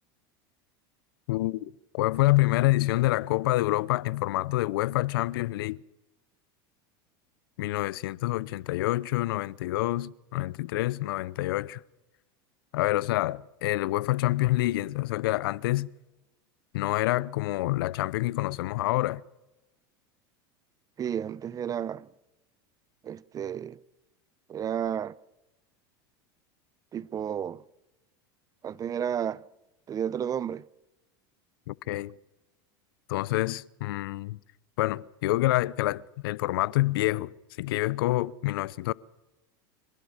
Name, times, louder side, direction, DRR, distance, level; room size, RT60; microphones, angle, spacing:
voice 1, 1.3-5.8 7.6-11.8 12.7-15.9 16.7-19.2 31.7-32.1 33.1-34.4 34.8-37.3 37.6-38.9, left 18 dB, 75° left, 0.7 m, -27 dB
voice 2, 21.0-22.1 23.0-23.8 24.5-25.1 26.9-27.6 28.6-29.4 29.9-30.6, right 8 dB, 30° right, 0.7 m, -32 dB
25.0 x 16.0 x 7.3 m
hypercardioid pair, 105°, 12 cm